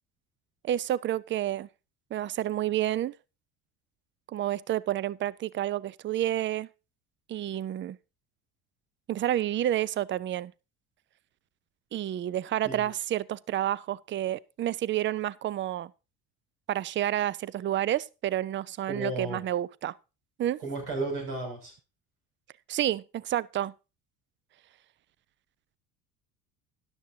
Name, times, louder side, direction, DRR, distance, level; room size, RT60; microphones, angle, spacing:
voice 1, 0.6-1.7 2.1-3.1 4.3-6.7 7.3-8.0 9.1-10.5 11.9-15.9 16.7-19.9 20.4-20.6 22.7-23.7, right 12 dB, 25° right, 0.5 m, -29 dB
voice 2, 18.9-19.4 20.6-21.7, right 2 dB, 80° right, 6.3 m, -33 dB
13.0 x 11.5 x 2.7 m
hypercardioid pair, 65°, 44 cm